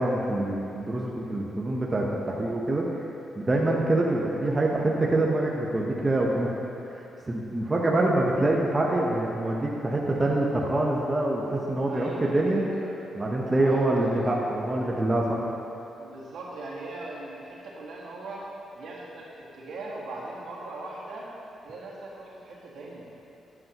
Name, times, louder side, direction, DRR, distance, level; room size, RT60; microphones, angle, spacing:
voice 1, 0.0-2.8 3.4-6.5 6.9-12.6 13.2-15.4, right 2 dB, 25° right, -2 dB, 0.8 m, -25 dB
voice 2, 11.8-13.0 13.5-14.5 16.0-18.5 18.7-21.3 21.6-23.0, right 2 dB, 80° right, -6 dB, 1.8 m, -40 dB
9.3 x 7.8 x 2.9 m, 2.9 s
cardioid pair, 100°, 0 cm